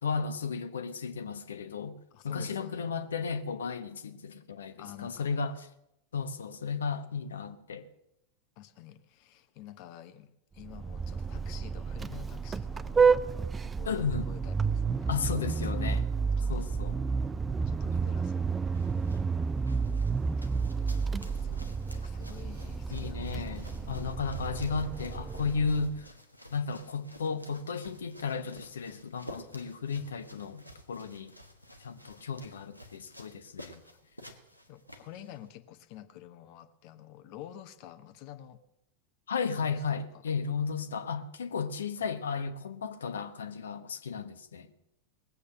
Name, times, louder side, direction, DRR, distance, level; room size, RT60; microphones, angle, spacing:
voice 1, 0.0-2.0 2.2-5.7 6.1-7.9 13.8-14.3 15.1-16.1 16.5-17.0 22.9-26.1 26.5-30.6 30.9-31.3 31.8-33.8 39.3-44.7, left 5 dB, 65° left, 1.1 m, -34 dB
voice 2, 2.1-2.9 4.8-5.4 8.6-13.2 13.6-15.1 16.4-16.7 17.7-18.6 20.3-23.9 33.9-34.0 34.7-38.6 39.6-40.3 42.0-42.1, left 12 dB, 45° left, 1.1 m, -49 dB
Vehicle horn car horn honking, 10.6-26.0, right 5 dB, 15° right, 0.4 m, -30 dB
sound 1, 18.5-35.5, left 1 dB, 90° left, 1.4 m, -52 dB
20.0 x 8.3 x 6.5 m
figure-of-eight pair, 90°, 0 cm